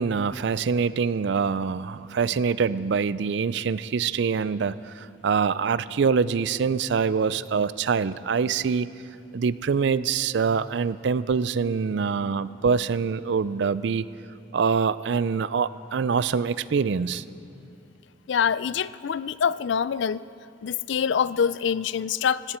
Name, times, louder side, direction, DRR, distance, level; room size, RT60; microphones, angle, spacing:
voice 1, 0.0-8.9 9.3-14.1 14.5-17.2, right 5 dB, 60° right, 17 dB, 0.4 m, -25 dB
voice 2, 18.3-20.2 20.6-22.6, left 7 dB, 65° left, 17 dB, 0.4 m, -25 dB
18.0 x 16.5 x 4.4 m, 2.8 s
head